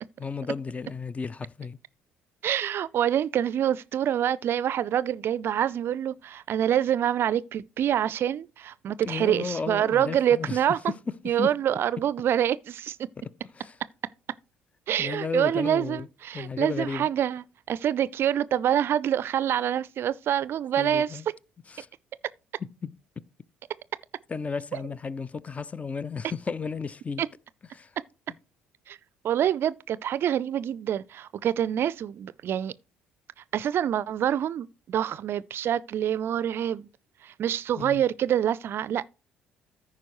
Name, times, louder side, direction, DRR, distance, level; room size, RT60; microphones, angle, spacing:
voice 1, 0.2-1.8 9.0-11.5 13.5-13.8 15.0-16.1 16.3-17.1 20.8-21.3 21.7-21.9 22.6-22.9 24.3-27.2 27.7-28.0 37.8-38.0, left 5 dB, 25° left, 0.4 m, -34 dB
voice 2, 2.4-10.8 11.3-13.1 14.9-21.2 27.2-27.3 28.9-29.0 29.2-32.7 33.5-36.9 37.2-39.1, right 10 dB, 50° right, 0.4 m, -26 dB
14.5 x 4.9 x 3.0 m
hypercardioid pair, 55°, 5 cm